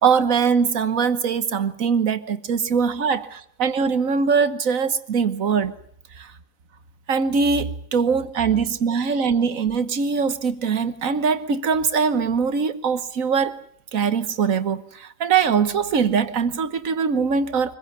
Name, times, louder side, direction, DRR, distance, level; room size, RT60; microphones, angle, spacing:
voice 1, 0.0-5.7 6.2-6.3 7.1-13.6 13.9-17.8, right 6 dB, 75° right, 1.6 m, -22 dB
24.5 x 15.5 x 9.5 m
omnidirectional pair, 1.4 m